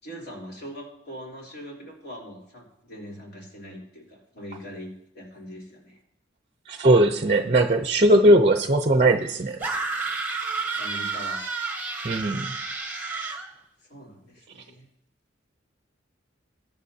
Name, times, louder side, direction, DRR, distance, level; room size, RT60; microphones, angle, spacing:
voice 1, 0.0-6.0 10.8-11.4 13.5-14.9, equal, 60° left, -3 dB, 3.6 m, -42 dB
voice 2, 6.7-9.6 12.0-12.5, right 1 dB, 35° right, 7 dB, 0.6 m, -19 dB
sound 1, 9.6-13.5, right 4 dB, 10° right, 1.3 m, -30 dB
21.0 x 9.3 x 2.8 m, 0.78 s
head